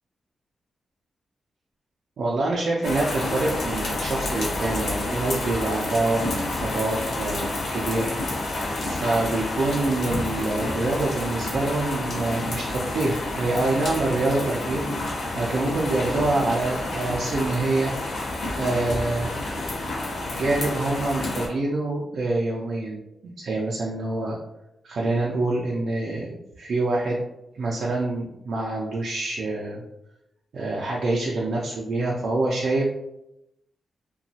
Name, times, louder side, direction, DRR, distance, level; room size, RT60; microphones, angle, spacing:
voice 1, 2.2-6.3 6.6-7.4 7.7-8.1 8.8-14.8 15.3-17.9 18.6-19.3 20.3-24.4 24.8-27.2 27.5-29.8 30.5-32.9, right 2 dB, 70° right, -3 dB, 0.4 m, -26 dB
sound 1, 2.8-21.5, left 2 dB, 65° left, 0.7 m, -29 dB
2.9 x 2.2 x 2.7 m, 0.87 s
wide cardioid pair, 150°, 0 cm